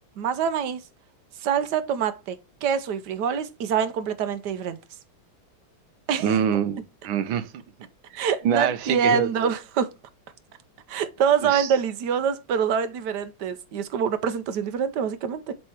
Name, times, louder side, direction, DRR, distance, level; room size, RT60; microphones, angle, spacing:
voice 1, 0.2-0.8 1.4-4.8 6.1-6.4 8.2-9.9 10.9-15.5, right 7 dB, 70° right, 1.2 m, -25 dB
voice 2, 6.2-7.6 8.1-9.5 11.4-11.7, right 8 dB, 85° right, 1.5 m, -26 dB
7.7 x 3.3 x 4.5 m
omnidirectional pair, 2.2 m